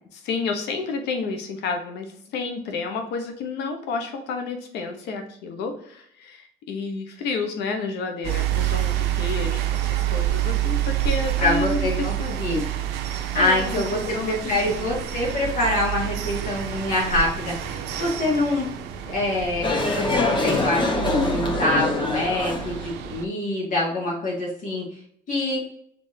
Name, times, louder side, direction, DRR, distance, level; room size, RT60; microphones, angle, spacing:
voice 1, 0.1-12.4 13.4-14.9, left 4 dB, 80° left, 5 dB, 1.1 m, -30 dB
sound 1, 8.2-23.3, right 12 dB, 85° right, 0.7 m, -28 dB
voice 2, 11.4-12.6 13.3-18.7 19.1-24.8 25.3-25.6, left 2 dB, 55° left, -4 dB, 1.9 m, -25 dB
sound 2, 19.6-22.9, left 2 dB, 30° left, 1.4 m, -24 dB
5.4 x 3.5 x 2.8 m, 0.68 s
cardioid pair, 110°, 17 cm